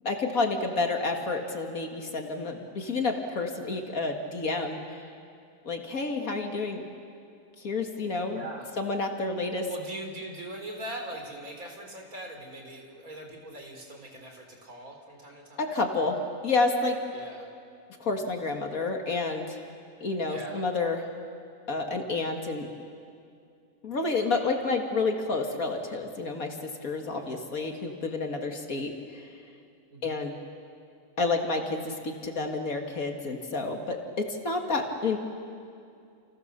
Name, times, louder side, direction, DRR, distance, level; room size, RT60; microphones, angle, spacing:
voice 1, 0.0-5.0 5.6-6.8 7.6-8.4 8.8-9.7 15.6-17.0 18.0-19.6 20.0-21.0 21.7-22.7 23.8-29.3 30.0-30.4 31.2-35.2, left 3 dB, 70° left, 3 dB, 2.4 m, -29 dB
voice 2, 8.3-8.7 9.7-15.7 17.1-17.5 20.3-20.6 29.9-30.3, right 1 dB, 70° right, 3 dB, 4.2 m, -41 dB
29.5 x 29.0 x 6.8 m, 2.4 s
omnidirectional pair, 1.5 m